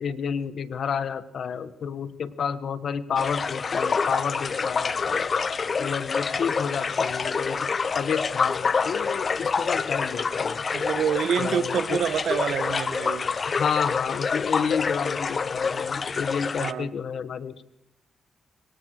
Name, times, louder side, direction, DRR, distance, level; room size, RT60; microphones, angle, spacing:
voice 1, 0.0-5.3 5.8-10.6 11.4-12.0 13.5-17.6, left 7 dB, 65° left, 13 dB, 1.4 m, -30 dB
sound 1, 3.2-16.7, left 5 dB, 50° left, 0.9 m, -27 dB
voice 2, 10.7-13.3 16.6-16.9, right 8 dB, 75° right, 14 dB, 1.2 m, -27 dB
25.5 x 23.0 x 5.0 m, 0.81 s
supercardioid pair, 50°, 0 cm